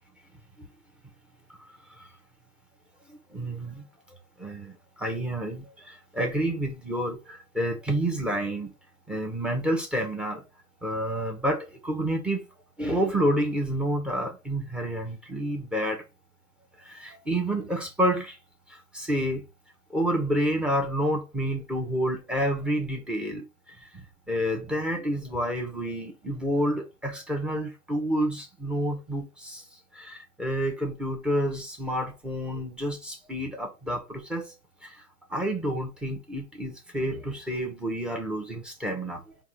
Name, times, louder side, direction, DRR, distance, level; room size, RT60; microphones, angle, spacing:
voice 1, 3.1-3.8 4.4-8.7 9.1-10.4 10.8-12.4 12.8-16.0 16.8-18.4 18.7-19.4 19.9-34.5 34.8-35.0 35.3-39.4, equal, ahead, 0.6 m, -29 dB
4.7 x 2.3 x 4.0 m
figure-of-eight pair, 105°, 47 cm